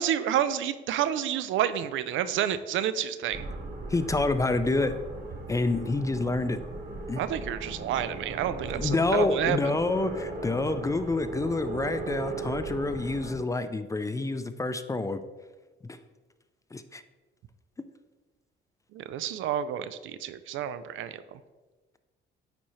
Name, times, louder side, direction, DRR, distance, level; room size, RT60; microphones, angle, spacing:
voice 1, 0.0-3.5 7.2-9.6 18.9-21.4, right 10 dB, 75° right, 13 dB, 0.4 m, -29 dB
sound 1, 3.3-13.3, right 3 dB, 60° right, 1.3 m, -38 dB
voice 2, 3.9-5.0 5.5-6.6 7.1-7.2 8.7-15.2 15.8-16.0 16.7-17.0 17.8-17.9, left 3 dB, 15° left, 11 dB, 0.4 m, -28 dB
9.3 x 4.2 x 3.1 m, 1.3 s
cardioid pair, 90°, 20 cm